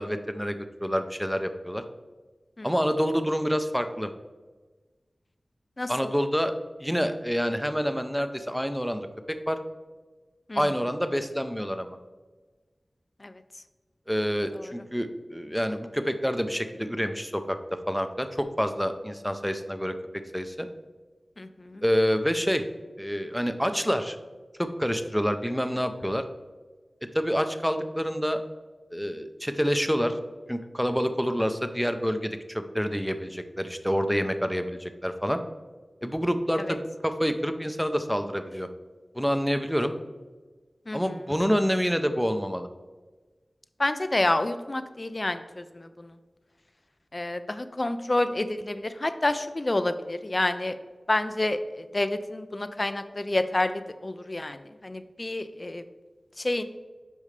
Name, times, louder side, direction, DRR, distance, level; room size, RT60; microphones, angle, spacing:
voice 1, 0.0-1.8 2.6-4.1 5.9-6.5 6.8-9.6 10.5-12.0 14.1-17.6 17.9-19.9 20.3-20.7 21.8-22.6 23.0-24.2 24.6-26.2 27.1-28.4 28.9-30.2 30.5-35.4 36.0-38.7 39.1-39.9 40.9-42.7, equal, ahead, 8 dB, 0.6 m, -27 dB
voice 2, 5.8-6.1 10.5-10.6 13.2-13.3 14.5-14.7 21.4-21.8 40.9-41.0 43.8-46.1 47.1-50.8 51.1-55.8 56.4-56.6, left 2 dB, 45° left, 11 dB, 0.5 m, -29 dB
8.6 x 5.4 x 3.3 m, 1.3 s
wide cardioid pair, 45°, 0 cm